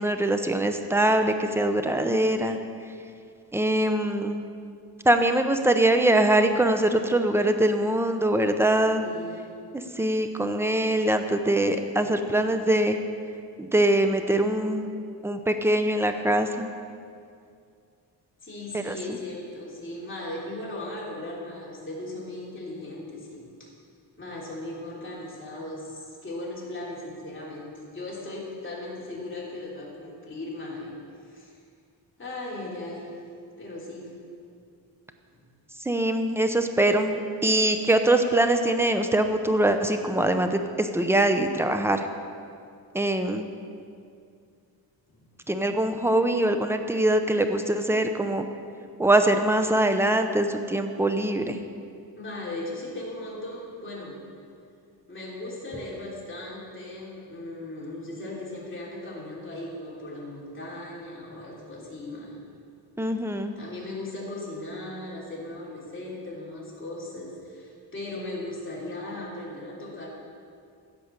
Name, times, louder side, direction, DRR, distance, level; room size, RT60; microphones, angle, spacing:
voice 1, 0.0-2.6 3.5-4.4 5.0-9.0 9.7-13.0 13.6-14.9 15.2-16.7 18.7-19.0 35.8-42.1 42.9-43.5 45.5-48.5 49.0-51.6 63.0-63.5, right 1 dB, 5° right, 7 dB, 0.7 m, -23 dB
voice 2, 9.0-9.5 18.4-23.7 24.2-30.9 31.2-31.5 32.2-33.2 33.6-34.1 35.3-35.4 45.1-45.2 52.2-54.2 55.1-62.4 63.6-70.1, left 2 dB, 30° left, -5 dB, 3.2 m, -37 dB
15.5 x 5.3 x 6.7 m, 2.4 s
cardioid pair, 115°, 41 cm